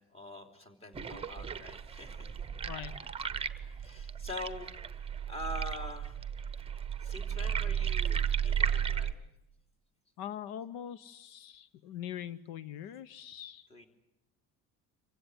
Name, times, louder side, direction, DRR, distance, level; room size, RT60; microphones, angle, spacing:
voice 1, 0.1-2.5 3.6-4.7 5.3-6.2 7.0-9.2 13.7-13.8, left 1 dB, 20° left, 2 dB, 3.3 m, -44 dB
sound 1, 0.9-9.1, right 8 dB, 15° right, 1.0 m, -34 dB
voice 2, 2.7-3.0 10.2-13.7, left 10 dB, 80° left, 16 dB, 0.9 m, -42 dB
25.5 x 16.0 x 9.8 m, 0.88 s
cardioid pair, 140°, 34 cm